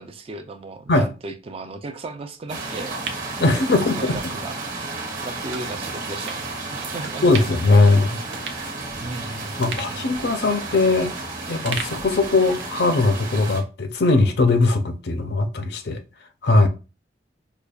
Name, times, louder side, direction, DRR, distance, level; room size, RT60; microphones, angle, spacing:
voice 1, 0.0-2.9 3.7-4.6 5.2-7.5 7.8-7.9 9.0-10.1 16.6-16.7, right 2 dB, 35° right, 0.4 m, -35 dB
sound 1, 2.5-13.6, right 3 dB, 50° right, 1.1 m, -32 dB
sound 2, 2.6-4.2 4.6-4.7 5.5-5.7 6.3-6.4 7.0-7.7 8.0-8.1 8.3-9.2 9.6-11.2 11.6-12.8 13.1-13.2, right 5 dB, 80° right, 0.6 m, -37 dB
voice 2, 3.4-4.2 7.2-8.2 9.6-11.1 11.5-16.0 16.4-16.7, left 3 dB, 60° left, 0.5 m, -19 dB
5.0 x 2.3 x 2.3 m
head